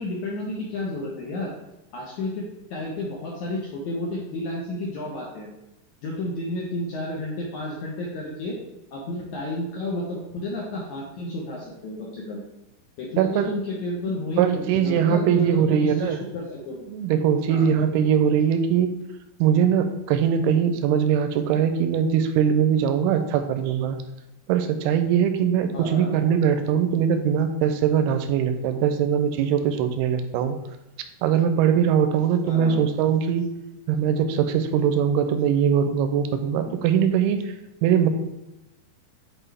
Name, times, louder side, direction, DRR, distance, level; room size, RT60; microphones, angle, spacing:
voice 1, 0.0-1.5 1.9-2.4 2.7-5.5 6.0-8.6 8.9-12.4 13.0-16.8 17.5-17.7 25.7-26.1 32.4-32.8, left 1 dB, 75° left, -3 dB, 1.7 m, -31 dB
voice 2, 13.2-13.5 14.1-16.2 16.7-18.9 19.4-24.0 24.5-30.6 31.2-33.5 33.9-37.4 37.8-38.1, right 8 dB, 85° right, 8 dB, 2.4 m, -21 dB
8.8 x 4.4 x 3.3 m, 0.96 s
omnidirectional pair, 4.7 m